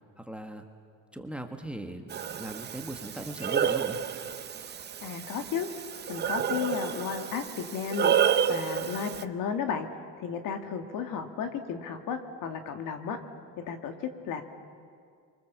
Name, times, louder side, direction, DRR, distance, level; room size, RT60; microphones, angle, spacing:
voice 1, 0.2-0.6 1.1-2.1 2.4-4.0, right 1 dB, 5° right, 4 dB, 1.6 m, -38 dB
Breathing, 2.1-9.2, right 8 dB, 30° right, 0.8 m, -30 dB
voice 2, 5.0-5.7 6.1-8.2 8.5-9.9 10.2-13.2 13.6-14.4, left 7 dB, 65° left, 6 dB, 2.3 m, -33 dB
30.0 x 24.0 x 7.4 m, 2.2 s
cardioid pair, 135°, 35 cm